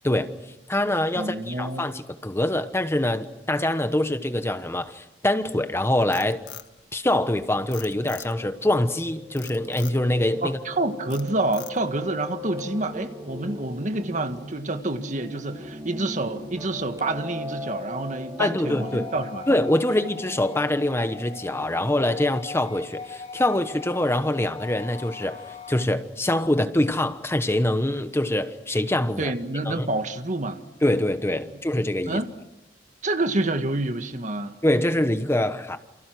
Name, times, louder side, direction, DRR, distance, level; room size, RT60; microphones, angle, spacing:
voice 1, 0.0-0.4 0.7-6.4 6.9-10.6 18.4-19.1 19.5-29.3 29.6-29.9 30.8-32.2 34.6-35.8, left 1 dB, 15° left, 1.1 m, -24 dB
voice 2, 1.2-1.9 10.4-19.4 29.2-30.6 31.5-31.6 32.1-32.3 33.0-34.6, right 2 dB, 45° right, 1.8 m, -28 dB
Frog, 6.0-7.3 7.7-8.6 9.4-10.0 10.5-10.8 11.1-12.0, left 12 dB, 85° left, 1.7 m, -42 dB
Piano, 7.6-22.0, left 1 dB, 20° right, 3.6 m, -39 dB
sound 1, 18.7-25.8, left 5 dB, 35° left, 1.3 m, -40 dB
29.0 x 29.0 x 6.2 m
head